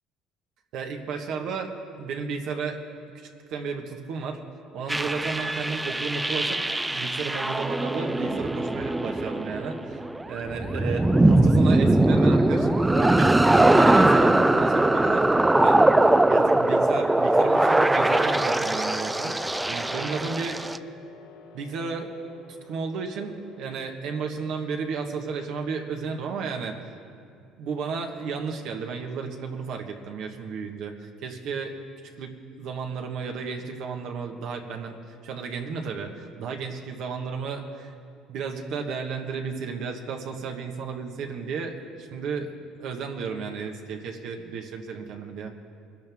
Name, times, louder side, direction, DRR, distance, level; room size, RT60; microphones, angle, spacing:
voice 1, 0.7-1.7 2.0-2.8 3.1-4.4 4.7-6.6 6.9-15.3 15.6-15.8 16.3-20.6 21.5-22.1 22.7-26.8 27.6-31.7 32.2-35.0 35.2-37.9 38.3-45.5, right 5 dB, 70° right, 3 dB, 1.3 m, -33 dB
sound 1, 4.9-20.8, right 2 dB, 10° right, 0.4 m, -21 dB
sound 2, 15.0-26.3, left 5 dB, 90° left, 2.3 m, -46 dB
21.5 x 12.0 x 3.6 m, 2.4 s
cardioid pair, 105°, 0 cm